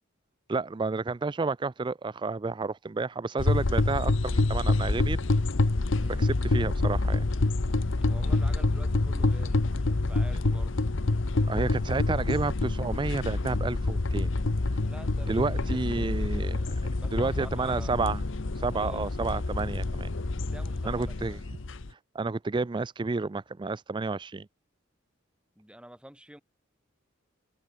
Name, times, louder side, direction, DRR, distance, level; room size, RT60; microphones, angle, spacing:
voice 1, 0.5-5.2 6.2-7.3 11.5-14.3 14.7-14.8 15.3-16.7 17.1-18.2 18.5-20.1 20.9-21.4 21.9-24.5, right 3 dB, 25° right, 0.4 m, -30 dB
sound 1, 3.4-21.9, left 2 dB, 65° left, 1.0 m, -27 dB
voice 2, 6.0-6.3 8.0-10.7 14.8-17.9 18.8-19.1 20.5-21.4 25.6-26.4, equal, 5° right, 4.5 m, -48 dB
head